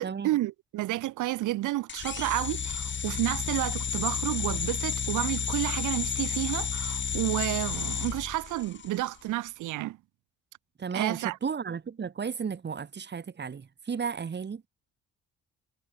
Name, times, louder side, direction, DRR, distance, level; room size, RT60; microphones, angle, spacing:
voice 1, 0.0-10.0 10.9-11.4, right 16 dB, 85° right, 1.2 m, -31 dB
sound 1, 1.9-9.0, left 7 dB, 40° left, 1.4 m, -31 dB
voice 2, 10.8-14.6, right 6 dB, 35° right, 1.8 m, -34 dB
cardioid pair, 90°, 30 cm